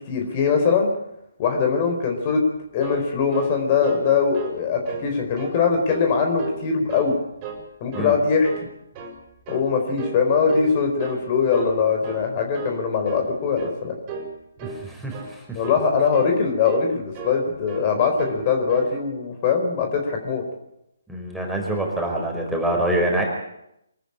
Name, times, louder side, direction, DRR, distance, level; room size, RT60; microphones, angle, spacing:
voice 1, 0.1-0.9 1.4-2.4 2.7-7.2 7.8-8.5 9.5-13.9 15.5-20.4, left 5 dB, 30° left, 4 dB, 4.4 m, -21 dB
sound 1, 2.6-4.1 4.3-4.6 4.8-5.5 5.9-6.6 6.9-7.6 7.9-8.2 8.4-9.2 9.5-9.7 10.0-10.2 10.5-11.2 11.5-11.7 12.0-12.3 12.5-12.8 13.0-13.3 13.6-13.8 14.1-14.3 14.6-14.8 15.1-15.3 15.6-15.9 16.1-16.4 16.6-17.4 17.7-17.9 18.2-18.4 18.7-18.9, right 5 dB, 25° right, 5.3 m, -35 dB
voice 2, 14.6-15.6 21.1-23.2, right 1 dB, ahead, -2 dB, 4.8 m, -25 dB
24.0 x 14.0 x 8.7 m, 0.82 s
figure-of-eight pair, 145°, 0 cm